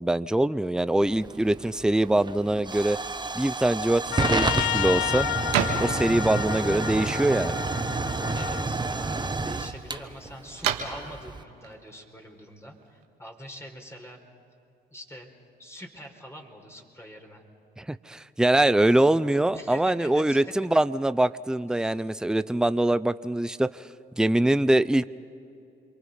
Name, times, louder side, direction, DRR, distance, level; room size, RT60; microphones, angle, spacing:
voice 1, 0.0-3.0 3.3-5.3 5.8-7.5 17.8-23.7 24.2-25.1, right 1 dB, 5° right, 15 dB, 0.6 m, -23 dB
Hiss / Fire / Tick, 1.0-11.4, right 3 dB, 20° right, 1.2 m, -30 dB
sound 1, 3.9-13.0, right 9 dB, 90° right, 1.7 m, -36 dB
Trumpet, 4.1-8.7, left 19 dB, 75° left, 0.4 m, -31 dB
voice 2, 8.3-14.2 14.9-15.3 15.6-17.5 19.5-20.4 21.7-22.0, equal, 10° left, 2 dB, 4.6 m, -44 dB
28.5 x 23.0 x 5.3 m, 2.8 s
supercardioid pair, 55°, 21 cm